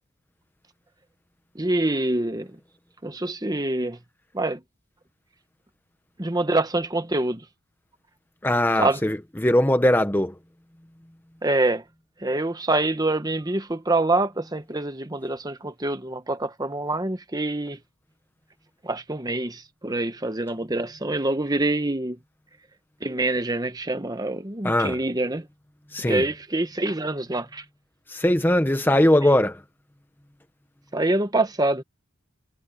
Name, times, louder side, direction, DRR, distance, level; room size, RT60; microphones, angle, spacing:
voice 1, 1.5-2.6 3.0-4.0 4.3-4.6 6.2-7.4 8.8-9.0 11.4-11.8 12.2-17.8 18.8-22.2 23.0-25.5 26.0-27.6 29.3-29.4 30.9-31.8, right 2 dB, 20° right, 1.1 m, -25 dB
voice 2, 8.4-10.3 24.6-25.0 25.9-26.2 28.1-29.6, left 1 dB, 10° left, 0.8 m, -20 dB
head